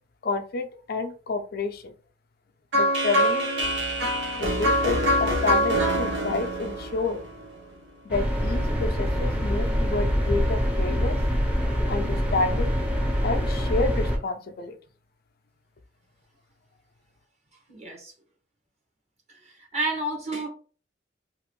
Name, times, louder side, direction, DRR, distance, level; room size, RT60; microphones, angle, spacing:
voice 1, 0.2-1.9 2.7-3.7 4.4-7.2 8.0-11.2 11.9-12.7 13.2-14.8, left 3 dB, 60° left, 6 dB, 0.5 m, -29 dB
sound 1, 2.7-7.7, equal, 80° right, 0.8 m, -24 dB
sound 2, 8.1-14.2, equal, 5° right, 0.7 m, -25 dB
voice 2, 17.7-18.1 19.4-20.5, right 2 dB, 40° right, 0 dB, 1.2 m, -30 dB
2.9 x 2.5 x 3.0 m, 0.38 s
head